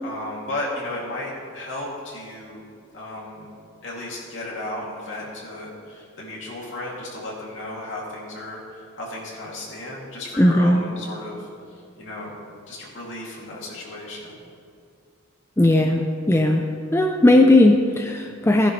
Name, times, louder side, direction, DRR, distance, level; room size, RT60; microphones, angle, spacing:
voice 1, 0.0-2.6 2.9-3.5 3.8-12.4 12.7-14.4, left 1 dB, 65° left, -4 dB, 2.7 m, -34 dB
voice 2, 10.4-10.8 15.6-16.6 16.9-18.7, left 1 dB, 15° left, 4 dB, 0.4 m, -17 dB
16.5 x 10.0 x 3.3 m, 2.3 s
head